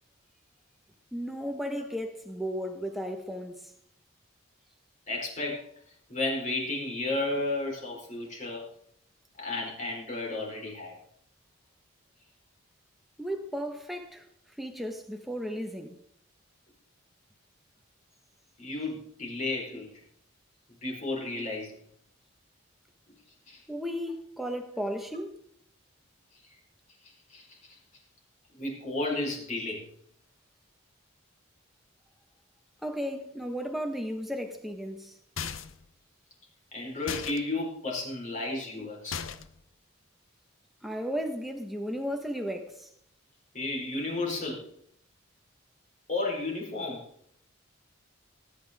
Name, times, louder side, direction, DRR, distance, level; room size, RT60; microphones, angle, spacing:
voice 1, 1.1-3.7 13.2-14.3 14.6-16.0 23.7-25.4 32.8-35.2 40.8-42.9, equal, ahead, 1.4 m, -34 dB
voice 2, 5.1-5.7 6.1-8.6 9.4-11.0 18.6-19.9 20.8-21.8 23.5-23.6 27.3-27.6 28.6-29.8 36.7-39.2 43.5-44.6 46.1-47.1, left 2 dB, 35° left, 4.3 m, -33 dB
sound 1, 35.4-35.9 37.1-37.4 39.1-39.6, left 7 dB, 70° left, 0.8 m, -36 dB
18.5 x 9.6 x 3.6 m
head